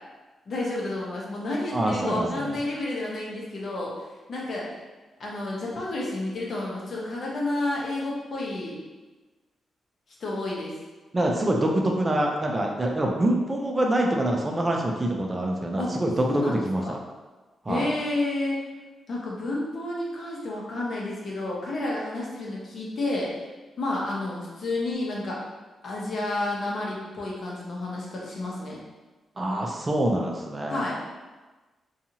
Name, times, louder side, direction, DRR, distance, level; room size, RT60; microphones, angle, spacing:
voice 1, 0.5-3.9 4.3-4.7 5.2-8.8 10.2-10.7 15.7-15.9 16.2-17.0 17.7-18.6 19.1-23.3 23.8-25.4 25.8-28.8 30.7-31.0, left 2 dB, 55° left, -4 dB, 0.8 m, -30 dB
voice 2, 1.7-2.5 11.1-17.0 17.7-17.9 29.4-30.8, right 1 dB, 25° right, 0 dB, 0.4 m, -25 dB
2.7 x 2.4 x 2.8 m, 1.2 s
cardioid pair, 85°, 0 cm